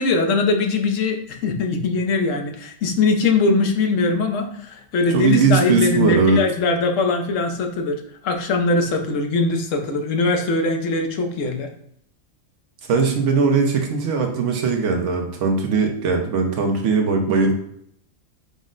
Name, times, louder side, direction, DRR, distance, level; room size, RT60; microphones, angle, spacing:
voice 1, 0.0-11.7, left 3 dB, 80° left, 4 dB, 1.1 m, -21 dB
voice 2, 5.1-6.4 12.9-17.5, right 4 dB, 75° right, 3 dB, 1.0 m, -19 dB
5.1 x 2.1 x 3.7 m, 0.70 s
omnidirectional pair, 1.3 m